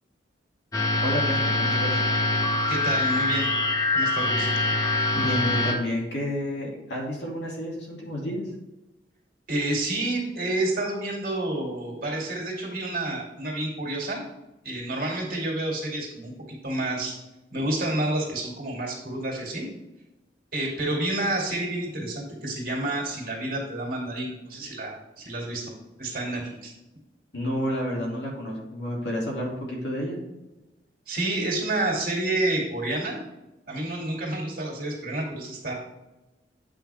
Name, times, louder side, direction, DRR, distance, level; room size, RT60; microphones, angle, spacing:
sound 1, 0.7-5.7, left 2 dB, 20° left, 1.2 m, -24 dB
voice 1, 1.0-2.0 5.1-8.4 27.3-30.2, equal, 75° left, -2 dB, 2.6 m, -30 dB
voice 2, 2.7-3.5 3.9-4.5 9.5-14.2 14.6-16.3 16.6-17.1 17.5-19.7 20.5-25.7 26.0-26.7 31.1-33.2 33.7-35.7, right 2 dB, 50° right, -2 dB, 2.5 m, -29 dB
8.3 x 5.9 x 3.5 m, 1.0 s
head